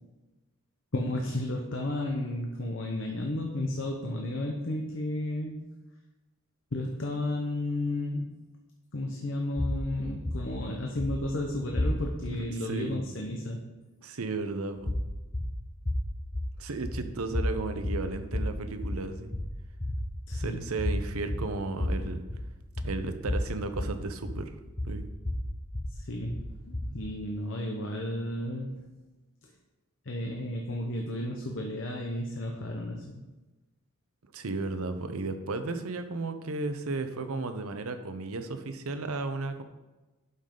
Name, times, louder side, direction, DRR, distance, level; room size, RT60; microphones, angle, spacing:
voice 1, 0.9-5.7 6.7-8.3 8.9-13.6 20.3-20.7 25.9-26.4 26.7-28.8 29.4-29.5 30.0-33.0, left 1 dB, 60° left, 1 dB, 0.9 m, -33 dB
sound 1, 9.6-12.4 14.8-27.1, left 1 dB, 30° left, 1.0 m, -33 dB
voice 2, 12.7-13.0 14.0-14.9 16.6-19.3 20.3-22.2 22.8-24.5 24.8-25.1 34.3-39.6, right 3 dB, 90° right, 8 dB, 0.8 m, -34 dB
11.5 x 5.7 x 3.8 m, 1.1 s
head